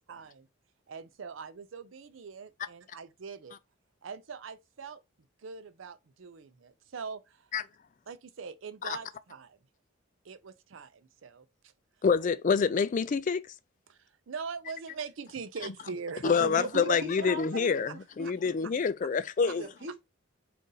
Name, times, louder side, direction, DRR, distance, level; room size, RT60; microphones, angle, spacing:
voice 1, 0.1-0.5 0.9-3.6 4.0-5.0 5.4-7.5 8.1-9.6 10.2-11.5 13.9-16.2 16.6-17.3 17.9-18.0 18.2-18.3 18.6-18.7 19.5-19.6, right 5 dB, 75° right, 0.5 m, -42 dB
voice 2, 12.0-13.4 16.2-19.6, left 5 dB, 40° left, 0.3 m, -27 dB
voice 3, 16.2-17.7 17.9-18.8 19.4-20.0, right 1 dB, 50° right, 1.0 m, -40 dB
3.9 x 2.6 x 3.8 m
head